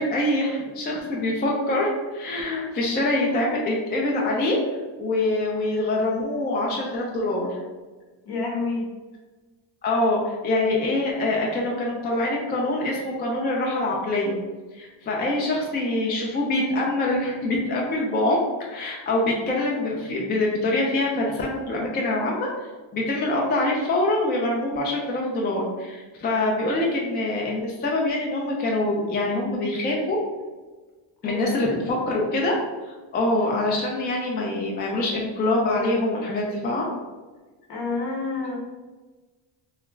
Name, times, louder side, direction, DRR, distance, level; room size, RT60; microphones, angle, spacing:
voice 1, 0.0-4.6 5.0-7.6 9.8-14.4 14.7-18.4 18.7-22.5 22.9-30.2 31.2-32.5 33.1-36.8, left 2 dB, 25° left, -2 dB, 0.3 m, -24 dB
voice 2, 8.3-8.9 31.2-31.6 37.7-38.6, left 3 dB, 55° left, -1 dB, 0.8 m, -29 dB
2.3 x 2.2 x 3.0 m, 1.3 s
cardioid pair, 120°, 47 cm